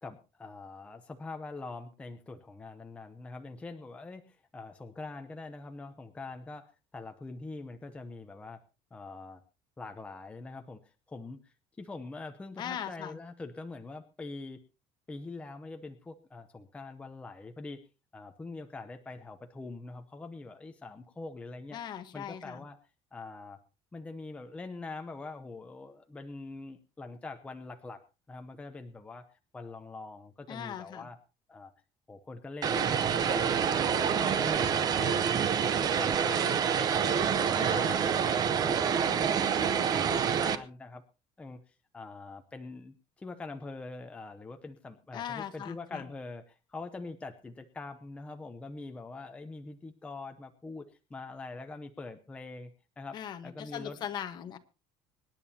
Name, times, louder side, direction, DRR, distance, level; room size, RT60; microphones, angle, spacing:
voice 1, 0.0-8.6 8.9-9.4 9.8-14.6 15.1-17.8 18.1-21.8 22.1-22.8 23.1-23.6 23.9-28.0 28.3-29.3 29.5-31.2 31.5-31.7 32.1-38.0 38.3-41.0 41.4-52.7 53.0-53.2 53.4-54.1, left 3 dB, 10° left, 6 dB, 0.7 m, -44 dB
voice 2, 12.6-13.2 21.7-22.6 30.5-31.1 37.6-38.1 45.1-46.0 53.1-54.6, left 9 dB, 40° left, 9 dB, 1.2 m, -40 dB
Vehicle, 32.6-40.6, right 7 dB, 35° right, 0.8 m, -27 dB
25.5 x 10.5 x 2.8 m, 0.30 s
cardioid pair, 175°, 12 cm